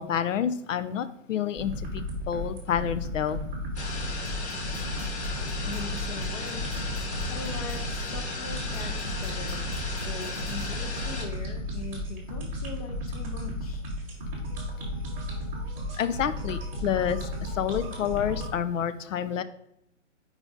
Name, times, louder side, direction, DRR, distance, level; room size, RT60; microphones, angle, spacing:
voice 1, 0.0-3.4 16.0-17.3 17.5-19.4, left 9 dB, 85° left, 13 dB, 0.6 m, -29 dB
sound 1, 1.6-18.5, left 1 dB, 5° right, 0.7 m, -34 dB
sound 2, 3.8-11.3, left 3 dB, 60° left, 1.4 m, -35 dB
sound 3, 4.2-8.0 8.7-10.7, right 3 dB, 40° right, 0.9 m, -46 dB
voice 2, 5.6-9.6 10.0-13.8, left 4 dB, 30° left, 5 dB, 0.6 m, -41 dB
4.8 x 3.7 x 5.3 m, 0.75 s
hypercardioid pair, 170°, 37 cm